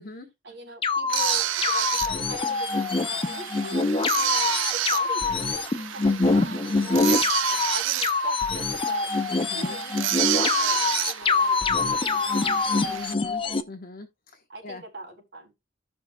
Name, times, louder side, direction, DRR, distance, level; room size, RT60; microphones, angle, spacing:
voice 1, 0.4-7.1 7.5-9.1 9.5-13.0 14.5-15.5, right 2 dB, 65° right, 4.0 m, -41 dB
sound 1, 0.8-13.6, left 4 dB, 30° left, 0.6 m, -25 dB
sound 2, 1.1-13.1, right 13 dB, 85° right, 0.5 m, -30 dB
voice 2, 7.0-7.3 9.3-9.8 12.8-13.4 13.7-14.8, left 2 dB, 50° left, 1.1 m, -41 dB
15.5 x 5.8 x 2.2 m
head